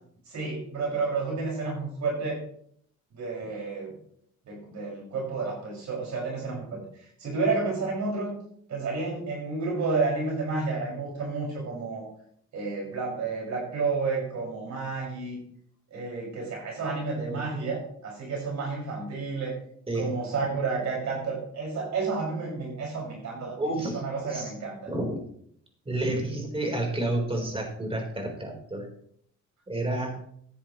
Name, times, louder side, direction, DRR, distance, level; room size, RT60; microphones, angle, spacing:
voice 1, 0.3-2.4 3.1-3.9 4.5-6.8 7.2-8.3 8.7-12.1 12.5-15.4 15.9-19.6 19.9-23.6 23.9-24.8, right 4 dB, 65° right, -3 dB, 5.8 m, -30 dB
voice 2, 17.2-17.7 19.9-20.1 23.6-24.5 24.9-25.2 25.9-28.9 29.7-30.1, right 1 dB, 20° right, 1 dB, 4.0 m, -30 dB
13.5 x 10.0 x 3.1 m, 0.65 s
cardioid pair, 90°, 30 cm